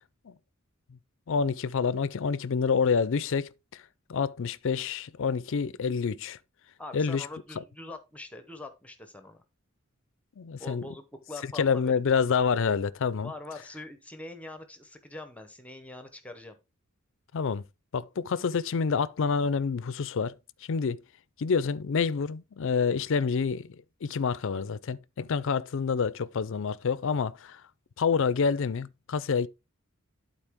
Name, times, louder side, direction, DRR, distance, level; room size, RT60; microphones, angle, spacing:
voice 1, 1.3-3.8 4.1-6.4 6.9-7.3 10.4-10.8 11.6-13.3 17.3-17.6 17.9-20.3 20.7-21.0 21.4-27.6 28.0-29.5, left 5 dB, 65° left, 0.5 m, -27 dB
voice 2, 6.8-9.4 10.6-12.0 13.2-16.6, left 2 dB, 5° left, 0.8 m, -43 dB
11.5 x 4.3 x 3.6 m
head